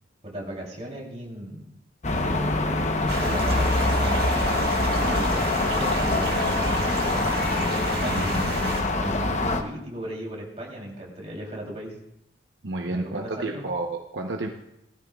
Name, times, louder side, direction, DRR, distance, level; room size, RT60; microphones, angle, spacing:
voice 1, 0.2-1.7 2.1-4.3 5.0-7.3 8.0-11.9 12.8-13.6, right 1 dB, 35° right, -2 dB, 3.2 m, -37 dB
sound 1, 2.0-9.6, left 2 dB, 35° left, 0.9 m, -24 dB
sound 2, 3.1-8.8, right 3 dB, 55° right, 2.0 m, -32 dB
voice 2, 12.6-14.5, right 2 dB, 75° right, 2 dB, 0.9 m, -30 dB
18.5 x 13.0 x 2.4 m, 0.83 s
head